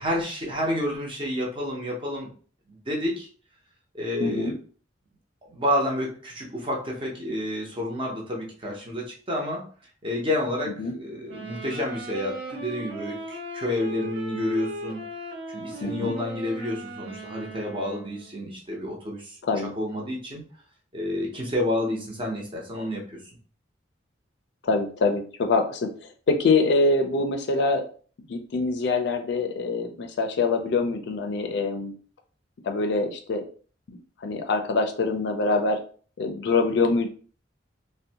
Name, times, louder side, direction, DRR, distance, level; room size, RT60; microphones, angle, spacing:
voice 1, 0.0-2.3 2.7-3.3 3.9-4.5 5.5-9.7 10.0-15.0 15.5-19.4 19.8-20.4 20.9-23.2, left 1 dB, 25° right, -2 dB, 0.7 m, -29 dB
voice 2, 4.2-4.5 10.8-10.9 15.8-16.1 19.5-19.7 24.6-27.8 28.3-31.9 32.6-33.4 34.2-35.8 36.2-37.1, left 3 dB, 60° left, 5 dB, 0.4 m, -24 dB
sound 1, 11.3-18.3, right 1 dB, 65° right, 0.6 m, -38 dB
2.5 x 2.1 x 2.7 m, 0.42 s
head